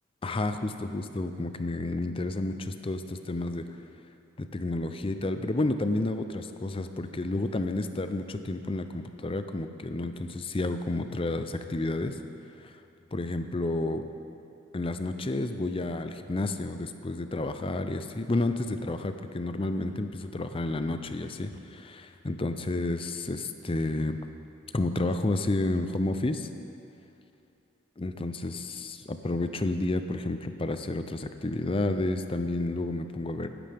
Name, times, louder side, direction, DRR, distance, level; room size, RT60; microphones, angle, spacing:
voice 1, 0.2-3.7 4.4-12.2 12.6-12.8 13.1-14.0 14.7-24.2 24.7-26.5 28.0-33.5, left 2 dB, 25° left, 9 dB, 0.5 m, -30 dB
16.0 x 11.0 x 3.5 m, 2.7 s
head